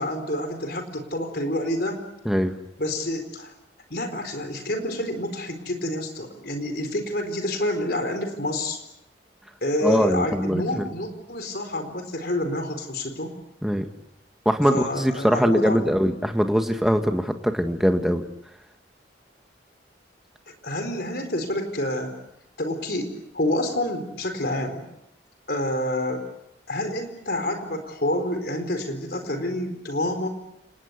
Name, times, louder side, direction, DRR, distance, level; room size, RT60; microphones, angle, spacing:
voice 1, 0.0-2.0 2.8-3.5 3.9-8.8 9.6-13.4 14.7-15.9 20.6-22.1 22.6-24.9 25.5-26.3 26.7-30.3, left 1 dB, 55° left, 7 dB, 4.3 m, -28 dB
voice 2, 2.2-2.5 9.8-10.8 13.6-13.9 14.4-18.2, equal, ahead, 5 dB, 1.7 m, -22 dB
29.5 x 19.0 x 8.2 m, 0.84 s
head